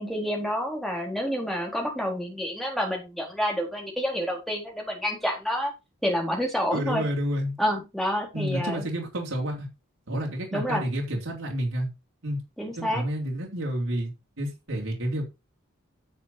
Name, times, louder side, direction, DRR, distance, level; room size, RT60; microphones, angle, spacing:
voice 1, 0.0-5.7 6.0-7.0 7.6-8.8 10.5-10.8 12.6-13.0, equal, ahead, 0 dB, 3.9 m, -28 dB
voice 2, 6.7-7.5 8.3-9.7 10.1-11.9 12.2-12.4 12.8-14.1 14.4-15.2, equal, 80° right, -1 dB, 3.2 m, -29 dB
10.0 x 7.3 x 4.1 m, 0.25 s
head